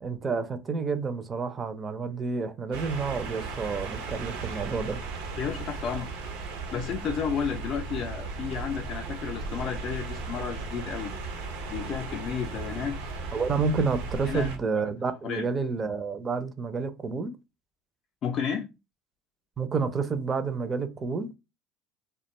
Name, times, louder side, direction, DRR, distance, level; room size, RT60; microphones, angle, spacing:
voice 1, 0.0-5.0 13.3-17.4 19.6-21.3, right 4 dB, 30° right, 0.4 m, -29 dB
sound 1, 2.7-14.6, right 3 dB, 80° right, 0.6 m, -36 dB
voice 2, 5.4-6.1 6.7-11.1 11.7-13.0 14.2-14.5 15.2-15.5 18.2-18.7, left 7 dB, 50° left, 0.3 m, -32 dB
2.3 x 2.2 x 3.0 m
supercardioid pair, 90°, 0 cm